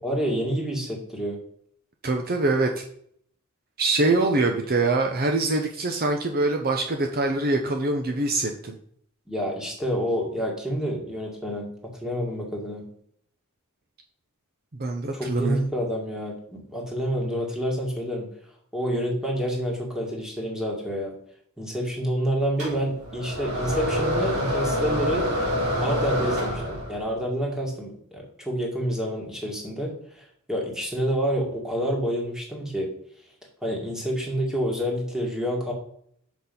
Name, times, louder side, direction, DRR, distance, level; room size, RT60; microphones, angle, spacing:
voice 1, 0.0-1.4 9.3-12.9 15.1-18.3 18.7-21.2 21.6-25.3 25.8-32.9 33.6-35.7, equal, 5° right, -1 dB, 2.1 m, -28 dB
voice 2, 2.0-2.8 3.8-8.8 14.7-15.6, right 2 dB, 45° right, 4 dB, 0.8 m, -24 dB
sound 1, 22.6-27.1, equal, 80° right, 3.9 m, -26 dB
6.6 x 6.1 x 5.5 m, 0.65 s
head